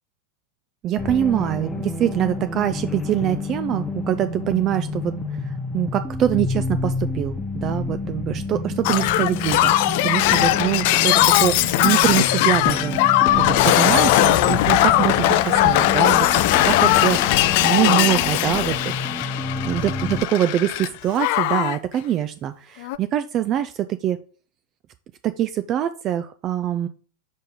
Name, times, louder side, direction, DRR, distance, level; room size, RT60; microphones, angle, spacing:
voice 1, 0.8-9.7 10.0-13.0 13.3-19.3 19.6-19.9 20.3-24.2 25.2-26.9, right 11 dB, 35° right, 12 dB, 0.3 m, -24 dB
sound 1, 1.0-20.2, left 2 dB, 10° left, 0.6 m, -29 dB
Shatter, 8.8-20.9 21.2-21.8 22.8-23.0, left 15 dB, 50° left, 0.3 m, -19 dB
5.6 x 5.2 x 3.7 m, 0.41 s
figure-of-eight pair, 90°, 0 cm